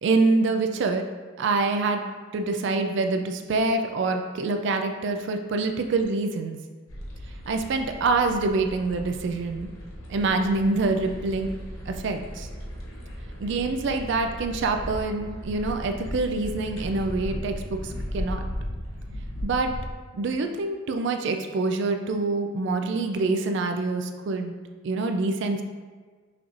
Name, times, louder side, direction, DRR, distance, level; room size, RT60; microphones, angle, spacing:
voice 1, 0.0-1.1 1.4-6.6 7.5-9.7 10.1-11.5 11.9-12.5 13.4-18.5 19.4-19.7 20.1-24.5 24.8-25.6, right 3 dB, 55° right, 6 dB, 0.3 m, -26 dB
sound 1, 6.9-19.9, equal, 85° left, 0.9 m, -36 dB
5.8 x 3.0 x 2.5 m, 1.5 s
head